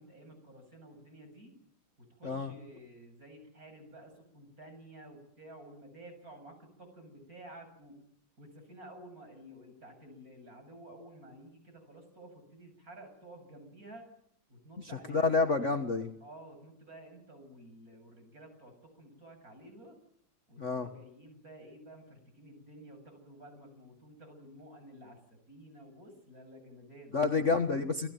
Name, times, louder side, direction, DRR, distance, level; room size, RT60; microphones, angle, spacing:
voice 1, 0.0-1.5 2.0-8.0 8.4-14.0 14.5-15.6 16.2-20.0 20.5-27.2, right 1 dB, 40° right, 7 dB, 8.1 m, -52 dB
voice 2, 15.1-16.1 20.6-20.9 27.1-28.1, left 4 dB, 40° left, 6 dB, 1.5 m, -28 dB
29.0 x 18.5 x 9.3 m, 0.72 s
omnidirectional pair, 2.3 m